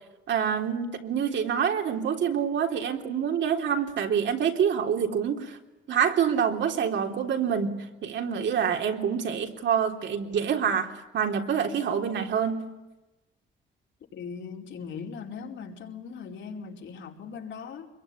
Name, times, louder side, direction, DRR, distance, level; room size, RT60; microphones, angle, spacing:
voice 1, 0.3-5.6 5.9-12.7, right 7 dB, 70° right, 3 dB, 3.5 m, -26 dB
voice 2, 14.1-17.9, left 6 dB, 70° left, 1 dB, 4.9 m, -39 dB
25.0 x 22.5 x 10.0 m, 1.0 s
cardioid pair, 90°, 20 cm